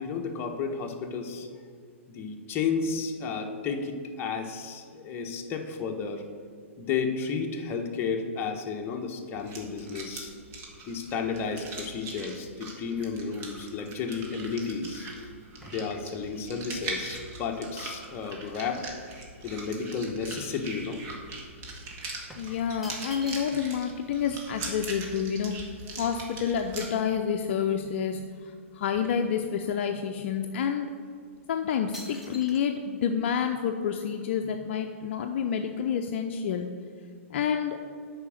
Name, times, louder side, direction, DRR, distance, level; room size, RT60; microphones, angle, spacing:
voice 1, 0.0-1.5 2.1-6.3 6.8-10.3 10.9-15.1 15.6-18.9 19.4-21.0, left 5 dB, 30° left, 3 dB, 1.1 m, -32 dB
sound 1, 9.3-26.9, right 3 dB, 35° right, 1.8 m, -41 dB
sound 2, 14.1-18.5 18.9-21.1 21.4-21.6 22.3-23.9 24.2-24.3 24.5-26.6 27.2-27.3 27.5-28.3 28.6-29.8 30.4-30.5 31.2-31.4 31.9-32.6, equal, 5° right, 1.3 m, -50 dB
voice 2, 22.4-25.7 26.0-30.9 31.5-36.7 37.3-37.8, left 7 dB, 55° left, 5 dB, 0.5 m, -29 dB
8.2 x 5.1 x 6.4 m, 2.1 s
hypercardioid pair, 125°, 7 cm